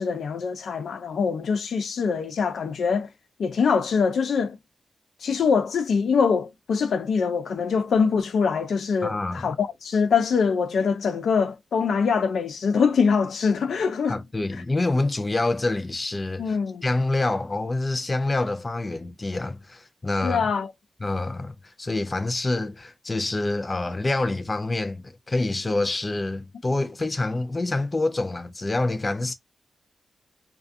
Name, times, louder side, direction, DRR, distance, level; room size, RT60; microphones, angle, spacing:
voice 1, 0.0-3.1 3.4-4.6 5.2-14.2 16.4-16.8 20.2-20.7, left 5 dB, 85° left, 0.4 m, -23 dB
voice 2, 9.0-9.5 14.1-20.4 21.0-29.3, left 2 dB, 25° left, 0.4 m, -27 dB
2.4 x 2.3 x 2.5 m
wide cardioid pair, 115°, 0 cm